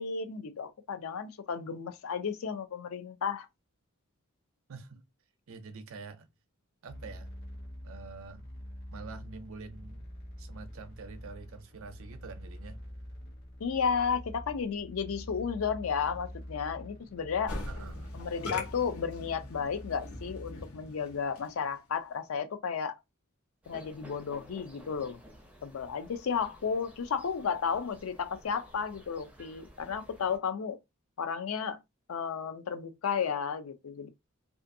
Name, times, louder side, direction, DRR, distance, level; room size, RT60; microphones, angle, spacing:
voice 1, 0.0-3.5 13.6-17.6 18.1-23.0 23.7-25.2 25.6-30.8 31.2-31.8 32.1-34.1, left 6 dB, 65° left, 0.4 m, -33 dB
voice 2, 4.7-5.0 5.5-6.3 6.8-7.3 7.8-8.4 8.9-10.0 10.4-12.8 17.7-18.1, right 4 dB, 65° right, 0.5 m, -46 dB
sound 1, 6.9-20.6, equal, 45° left, 0.9 m, -45 dB
Musical instrument, 17.5-21.7, left 2 dB, 80° left, 0.9 m, -42 dB
sound 2, 23.6-30.4, equal, 5° right, 0.4 m, -54 dB
2.5 x 2.4 x 2.5 m
head